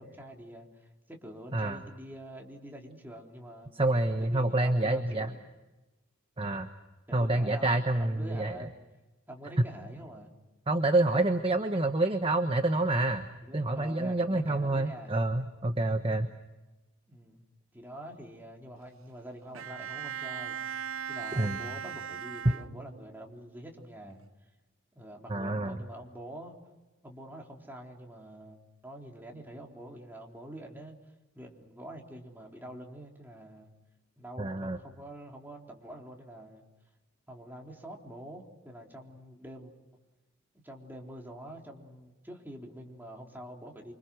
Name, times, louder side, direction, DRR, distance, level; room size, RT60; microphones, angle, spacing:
voice 1, 0.0-3.7 4.2-5.4 7.1-8.7 9.3-10.3 13.4-15.2 17.1-17.4 17.7-20.6 21.1-24.2 25.0-26.5 27.0-31.0 31.4-33.7 34.2-36.6 37.3-39.7 40.6-43.9, right 1 dB, 10° right, 0 dB, 3.9 m, -46 dB
voice 2, 3.8-5.3 6.4-6.7 7.1-8.7 10.7-13.3 13.5-16.3 21.4-21.6 25.3-25.8 34.4-34.8, right 2 dB, 25° right, 7 dB, 1.1 m, -28 dB
Bowed string instrument, 19.5-23.2, right 7 dB, 75° right, 0.8 m, -38 dB
29.0 x 25.5 x 6.4 m, 1.1 s
head